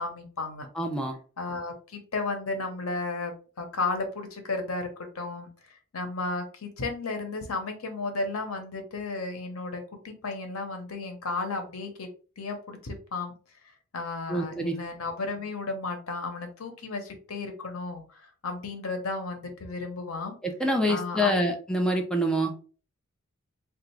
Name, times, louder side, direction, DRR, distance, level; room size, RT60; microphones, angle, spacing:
voice 1, 0.0-0.7 1.4-5.5 5.9-12.1 12.4-13.3 13.9-20.3 20.9-21.4, left 3 dB, 85° left, 5 dB, 0.8 m, -33 dB
voice 2, 0.8-1.2 14.3-14.8 20.4-22.5, equal, 5° left, 2 dB, 0.4 m, -26 dB
3.3 x 2.4 x 3.1 m, 0.38 s
head